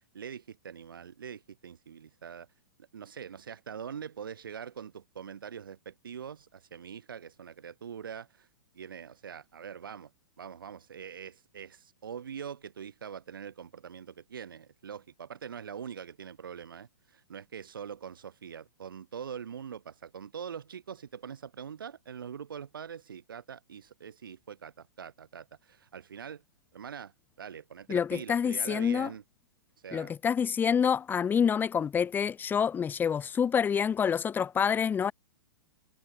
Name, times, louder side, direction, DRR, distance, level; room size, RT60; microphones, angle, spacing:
voice 1, 0.1-2.5 2.9-8.5 8.7-10.1 10.4-26.4 26.7-27.1 27.4-29.2 29.8-30.1, right 7 dB, 70° right, 7.2 m, -43 dB
voice 2, 27.9-29.1 29.9-35.1, left 7 dB, 15° left, 1.2 m, -27 dB
figure-of-eight pair, 110°, 12 cm